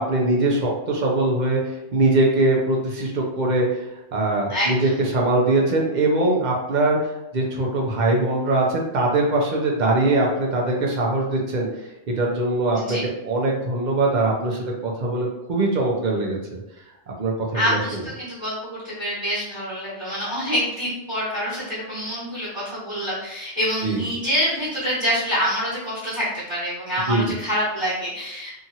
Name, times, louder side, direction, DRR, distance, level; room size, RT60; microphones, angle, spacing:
voice 1, 0.0-3.8 4.1-11.7 12.1-13.0 13.2-16.4 17.2-18.0 23.8-24.0 27.1-27.4, right 2 dB, 50° right, -1 dB, 0.6 m, -22 dB
voice 2, 4.5-4.9 12.7-13.0 17.5-28.5, equal, 15° left, -12 dB, 1.3 m, -26 dB
2.8 x 2.5 x 2.8 m, 0.89 s
omnidirectional pair, 1.2 m